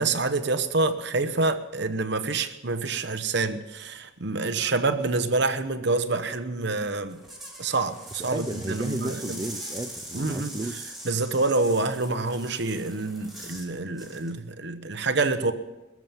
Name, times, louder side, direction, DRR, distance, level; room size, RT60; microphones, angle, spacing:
voice 1, 0.0-7.2 7.6-9.4 10.1-10.5 11.0-15.5, right 3 dB, 60° right, 1.0 m, -27 dB
sound 1, 7.0-13.7 14.0-14.3, right 1 dB, ahead, 3.1 m, -42 dB
voice 2, 8.3-10.9, right 2 dB, 20° right, 0.5 m, -33 dB
21.0 x 7.5 x 7.3 m
head